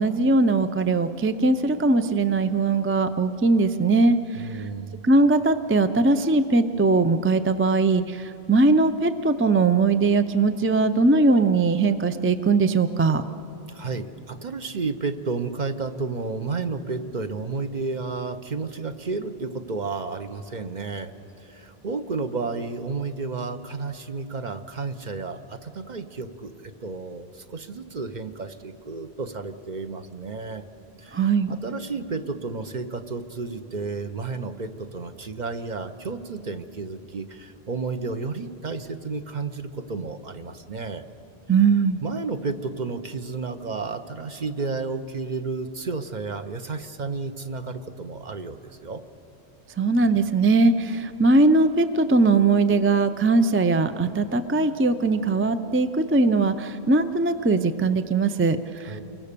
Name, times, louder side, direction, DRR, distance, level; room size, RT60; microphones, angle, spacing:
voice 1, 0.0-4.6 5.0-13.2 31.1-31.5 41.5-42.0 49.8-59.0, right 3 dB, 20° right, 10 dB, 0.4 m, -20 dB
voice 2, 4.3-5.0 13.7-21.1 21.4-30.6 31.0-41.0 42.0-49.0 58.9-59.0, right 4 dB, 45° right, 8 dB, 1.0 m, -32 dB
28.5 x 23.0 x 6.8 m, 2.9 s
omnidirectional pair, 1.1 m